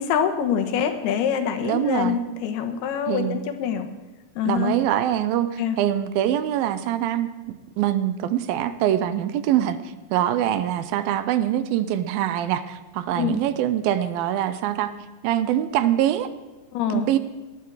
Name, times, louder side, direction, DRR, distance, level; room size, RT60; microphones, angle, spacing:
voice 1, 0.0-3.9 4.4-4.8 5.6-5.8 13.1-13.4 16.7-17.1, left 8 dB, 85° left, 6 dB, 3.2 m, -25 dB
voice 2, 1.6-2.2 3.1-3.4 4.5-9.8 10.1-14.9 15.2-16.3 16.9-17.2, right 11 dB, 80° right, 12 dB, 2.4 m, -24 dB
19.0 x 11.5 x 4.8 m, 1.2 s
omnidirectional pair, 4.4 m